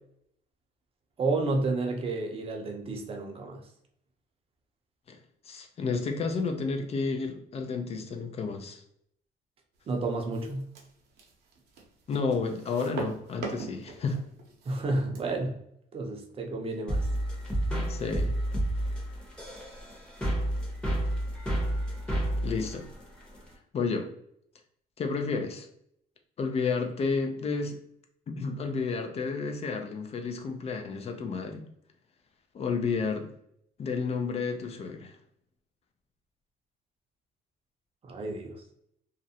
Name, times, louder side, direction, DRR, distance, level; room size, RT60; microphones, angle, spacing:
voice 1, 1.2-3.6 9.9-10.7 14.7-15.5 15.9-17.1 38.0-38.6, right 3 dB, 35° right, 2 dB, 0.6 m, -31 dB
voice 2, 5.4-8.8 12.1-14.2 17.9-18.3 22.4-22.9 23.7-24.1 25.0-25.7 26.4-27.8 28.3-31.6 32.5-33.3 33.8-35.2, left 4 dB, 40° left, 5 dB, 0.4 m, -31 dB
sound 1, 10.1-15.4, right 4 dB, 75° right, 0.7 m, -41 dB
sound 2, 16.9-23.5, right 1 dB, 5° left, 0.8 m, -30 dB
2.4 x 2.0 x 2.7 m, 0.73 s
cardioid pair, 110°, 17 cm